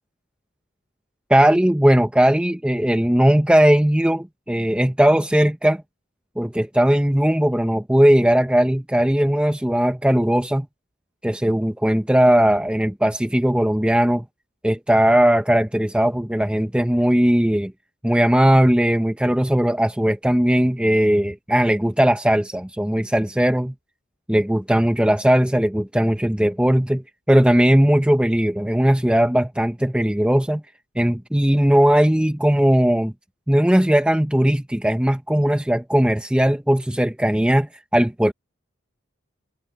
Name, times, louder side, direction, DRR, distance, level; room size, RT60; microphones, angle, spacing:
voice 1, 1.3-5.8 6.4-10.7 11.2-14.2 14.6-17.7 18.0-23.7 24.3-30.6 31.0-33.1 33.5-38.3, equal, 5° right, 0.7 m, -18 dB
head